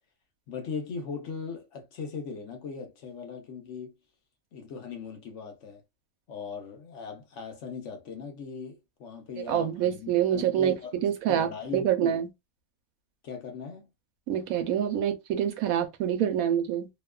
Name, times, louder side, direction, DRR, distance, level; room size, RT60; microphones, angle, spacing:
voice 1, 0.5-3.9 4.5-5.8 6.3-10.9 11.3-12.2 13.2-13.9, left 5 dB, 60° left, 1.0 m, -39 dB
voice 2, 9.5-10.7 11.0-12.3 14.3-16.9, right 10 dB, 80° right, 1.1 m, -26 dB
2.8 x 2.3 x 2.2 m
omnidirectional pair, 1.5 m